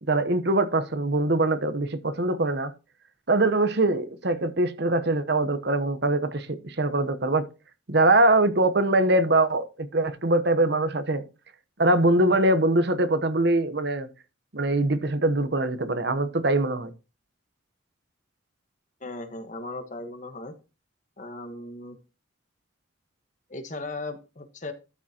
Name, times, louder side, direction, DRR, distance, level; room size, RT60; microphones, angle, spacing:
voice 1, 0.1-2.7 3.3-7.5 7.9-11.2 11.8-14.1 14.5-16.9, right 2 dB, 55° right, 0.9 m, -23 dB
voice 2, 19.0-20.5 21.2-22.0 23.5-24.7, left 2 dB, 40° left, 1.4 m, -37 dB
13.0 x 7.1 x 2.9 m
head